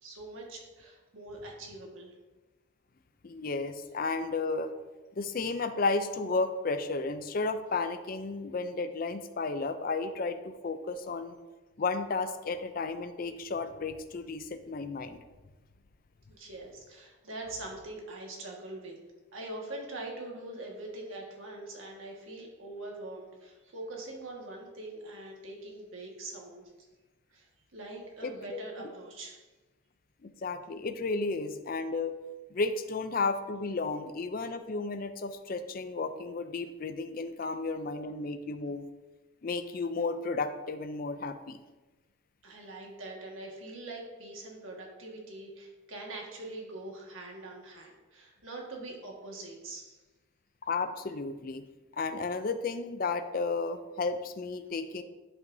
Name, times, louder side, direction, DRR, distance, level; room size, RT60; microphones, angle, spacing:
voice 1, 0.0-2.1 16.3-19.0 19.3-26.7 27.3-29.4 42.4-50.0, right 2 dB, 80° right, -1 dB, 1.7 m, -43 dB
voice 2, 3.2-4.7 5.2-11.4 11.8-15.2 28.2-28.9 30.2-32.1 32.5-38.9 39.4-41.6 50.6-51.6 52.0-55.0, left 3 dB, 45° left, 10 dB, 0.4 m, -33 dB
10.5 x 5.4 x 2.7 m, 1.2 s
head